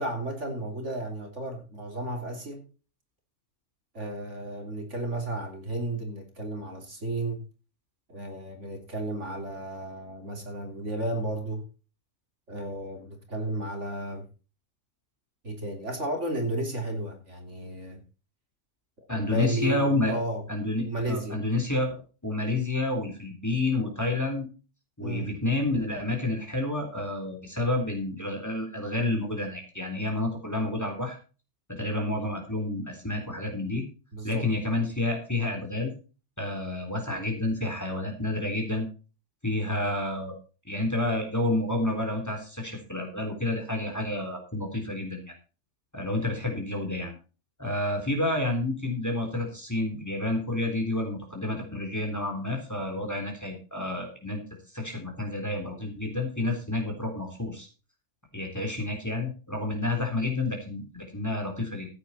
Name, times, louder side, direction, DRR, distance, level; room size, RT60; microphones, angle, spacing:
voice 1, 0.0-2.6 3.9-7.5 8.1-11.6 12.5-14.3 15.4-18.0 19.1-20.4 20.8-21.4 25.0-25.3 34.1-34.5, right 1 dB, 50° right, 3.6 m, -33 dB
voice 2, 19.1-20.2 20.5-22.0 22.2-24.5 25.0-31.2 31.7-33.8 34.2-35.9 36.4-38.9 39.4-40.3 40.7-45.3 45.9-47.1 47.6-54.4 54.7-57.7 58.3-61.9, left 2 dB, 10° left, 3.6 m, -29 dB
15.0 x 8.7 x 4.3 m
omnidirectional pair, 1.6 m